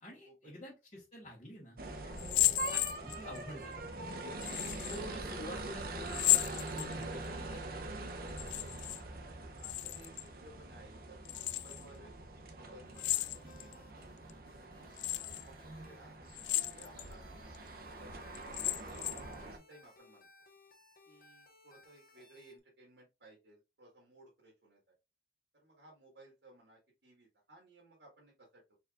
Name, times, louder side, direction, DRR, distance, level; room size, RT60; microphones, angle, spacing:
voice 1, 0.0-3.7 4.8-7.6, equal, 35° left, -5 dB, 1.5 m, -48 dB
sound 1, 1.8-19.6, right 2 dB, 55° right, 0.8 m, -44 dB
sound 2, 2.2-3.4 4.4-5.0 6.1-7.3 8.3-9.0 9.3-10.3 11.2-11.8 13.0-13.7 14.3-14.4 15.0-15.4 16.3-17.1 17.5-17.6 18.3-19.3, left 15 dB, 85° left, 0.3 m, -33 dB
voice 2, 9.5-12.1 12.5-14.1 14.6-16.1 16.7-17.5 17.8-20.3 21.0-24.8 25.5-28.7, right 1 dB, 75° right, -3 dB, 1.7 m, -59 dB
sound 3, 12.8-22.6, left 2 dB, 55° left, 1.1 m, -62 dB
4.4 x 4.1 x 2.4 m, 0.26 s
head